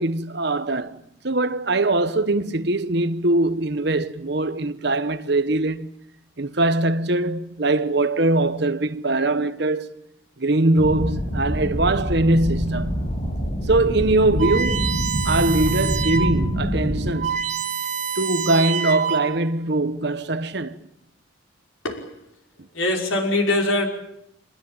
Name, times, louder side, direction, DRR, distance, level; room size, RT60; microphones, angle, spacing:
voice 1, 0.0-5.9 6.4-9.9 10.4-13.1 13.6-15.0 15.2-17.6 18.2-20.8, right 2 dB, 55° right, 1.2 m, -22 dB
sound 1, 10.8-17.1, equal, 30° left, 5.6 m, -26 dB
sound 2, 14.4-16.4 16.8-16.9 17.1-19.5, right 7 dB, 35° right, 3.0 m, -27 dB
voice 2, 21.8-22.2 22.7-23.9, left 2 dB, 85° left, 5.8 m, -22 dB
26.5 x 21.0 x 9.0 m
head